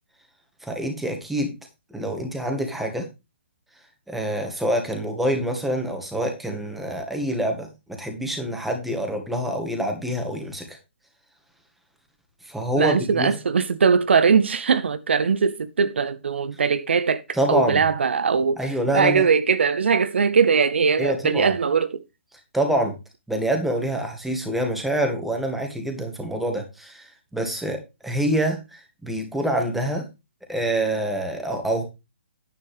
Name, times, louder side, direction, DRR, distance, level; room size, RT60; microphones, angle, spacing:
voice 1, 0.6-1.5 1.9-3.1 4.1-7.7 8.0-10.8 12.4-13.4 17.3-17.8 18.6-19.3 21.0-21.5 22.5-22.9 23.3-27.8 28.0-30.0 30.5-31.8, right 1 dB, ahead, 2.0 m, -26 dB
voice 2, 12.8-17.2 17.5-18.6 18.9-22.0, right 5 dB, 70° right, 0.7 m, -20 dB
9.8 x 8.4 x 3.3 m
hypercardioid pair, 140°, 6 cm